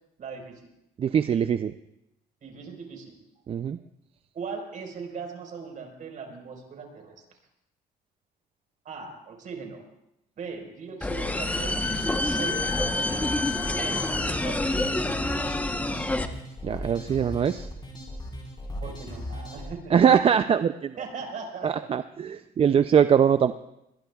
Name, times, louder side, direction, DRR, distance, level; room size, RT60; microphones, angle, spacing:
voice 1, 0.2-0.7 2.4-3.2 4.3-7.1 8.8-9.8 10.4-11.9 12.2-13.3 13.7-14.7 18.8-20.0 21.0-21.9 22.2-22.4, right 5 dB, 50° right, 2 dB, 4.6 m, -39 dB
voice 2, 1.0-1.7 3.5-3.8 16.6-17.7 19.9-21.0 21.6-23.5, right 8 dB, 35° right, 11 dB, 0.5 m, -22 dB
sound 1, 11.0-16.3, left 2 dB, 10° left, 1.0 m, -27 dB
sound 2, 11.6-19.7, left 1 dB, 25° left, 4.6 m, -37 dB
22.5 x 21.5 x 2.4 m, 0.85 s
cardioid pair, 110°, 17 cm